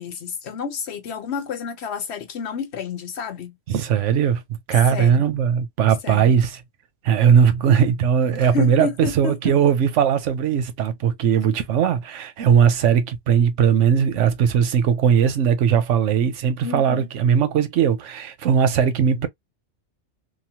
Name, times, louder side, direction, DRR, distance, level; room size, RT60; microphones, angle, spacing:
voice 1, 0.0-3.6 4.9-5.2 6.0-6.3 8.3-9.5 16.6-17.1, left 6 dB, 65° left, 1.0 m, -30 dB
voice 2, 3.7-4.4 4.7-6.6 7.0-19.3, right 8 dB, 90° right, 1.0 m, -19 dB
3.0 x 2.2 x 2.8 m
omnidirectional pair, 1.2 m